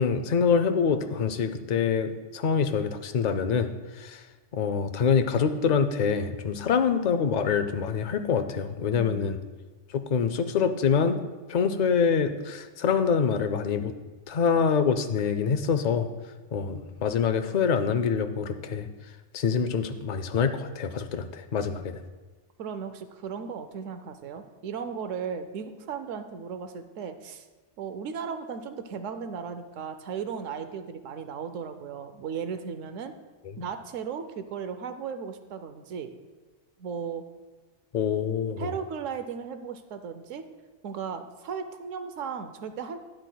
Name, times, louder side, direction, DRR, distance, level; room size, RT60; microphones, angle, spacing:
voice 1, 0.0-3.7 4.0-4.2 4.5-9.4 9.9-11.2 11.5-13.9 14.3-16.1 16.5-18.9 19.3-22.0 37.9-38.7, left 6 dB, 55° left, 9 dB, 0.5 m, -25 dB
voice 2, 8.9-9.4 22.6-27.5 27.8-33.1 33.6-36.1 36.8-37.2 38.6-40.5 40.8-43.0, right 6 dB, 85° right, 9 dB, 1.0 m, -36 dB
12.0 x 9.3 x 2.3 m, 1.3 s
omnidirectional pair, 1.3 m